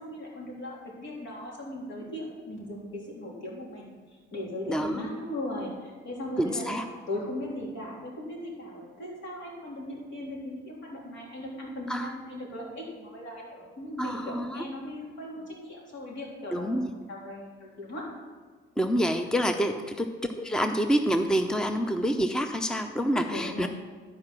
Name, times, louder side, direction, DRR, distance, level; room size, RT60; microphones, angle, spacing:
voice 1, 0.0-3.9 4.3-18.0 19.7-19.9 23.3-23.7, left 1 dB, 70° left, -3 dB, 3.5 m, -38 dB
voice 2, 4.7-5.1 6.4-6.8 11.9-12.1 14.0-14.6 16.5-16.9 18.8-23.7, equal, 5° left, 7 dB, 0.6 m, -27 dB
12.5 x 4.9 x 6.1 m, 1.5 s
cardioid pair, 90°, 20 cm